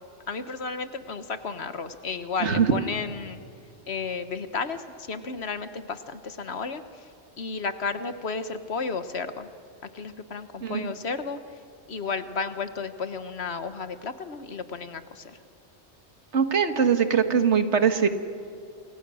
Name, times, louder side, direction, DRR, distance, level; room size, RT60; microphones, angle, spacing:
voice 1, 0.3-3.4 3.9-7.1 7.4-9.5 9.9-11.4 11.9-15.4, left 4 dB, 65° left, 10 dB, 1.5 m, -33 dB
voice 2, 16.3-18.1, right 7 dB, 80° right, 8 dB, 1.8 m, -22 dB
28.5 x 25.5 x 6.4 m, 2.7 s
omnidirectional pair, 1.2 m